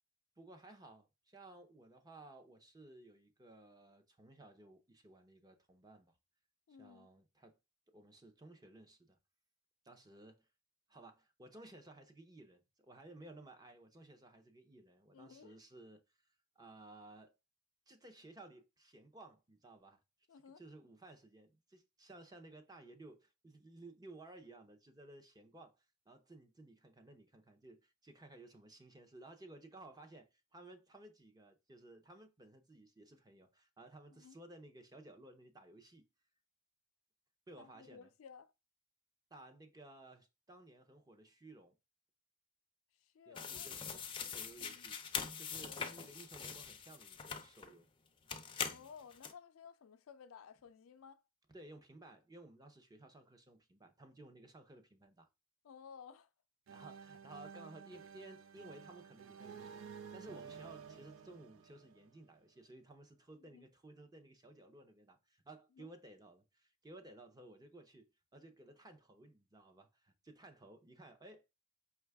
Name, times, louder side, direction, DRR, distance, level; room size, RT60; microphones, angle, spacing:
voice 1, 0.4-6.1 6.8-7.6 7.9-9.2 9.8-10.5 10.9-16.0 16.6-17.3 17.9-20.0 20.6-36.0 37.5-38.1 39.3-41.8 43.3-45.0 45.4-47.9 51.5-55.3 56.7-59.8 60.1-68.1 68.3-71.6, right 2 dB, 20° right, 0.6 m, -57 dB
voice 2, 6.7-7.1 15.1-15.5 20.3-20.6 34.1-34.4 37.6-38.5 43.0-43.7 44.6-44.9 45.5-45.9 48.7-51.2 55.6-56.3 63.5-63.7 65.8-65.9, left 6 dB, 80° left, 0.4 m, -56 dB
sound 1, 43.4-47.7 48.3-49.3, left 6 dB, 25° left, 0.4 m, -43 dB
sound 2, 56.7-62.4, right 6 dB, 70° right, 0.4 m, -52 dB
5.3 x 2.3 x 3.4 m
head